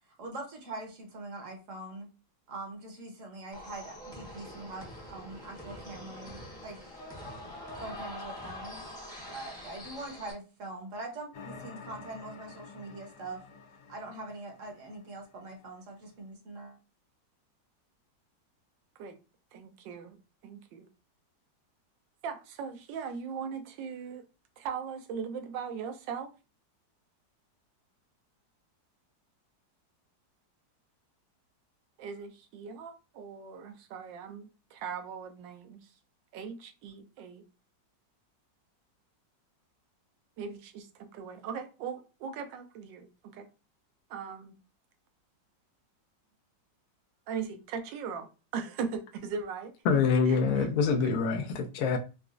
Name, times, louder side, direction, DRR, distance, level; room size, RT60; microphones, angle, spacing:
voice 1, 0.2-2.1 2.5-6.8 7.8-8.8 9.3-13.4 13.9-16.8, right 2 dB, 55° right, 1.0 m, -43 dB
sound 1, 3.5-10.3, left 1 dB, 5° left, 0.5 m, -44 dB
sound 2, 11.3-15.8, left 4 dB, 90° left, 1.4 m, -50 dB
voice 2, 19.5-20.2 20.4-20.9 22.2-24.2 24.6-26.3 32.0-35.9 36.3-37.4 40.4-43.5 44.1-44.5 47.3-49.7 50.3-50.7, right 6 dB, 85° right, 1.3 m, -39 dB
voice 3, 49.9-52.0, left 5 dB, 70° left, 0.9 m, -25 dB
4.0 x 2.3 x 2.4 m
omnidirectional pair, 2.0 m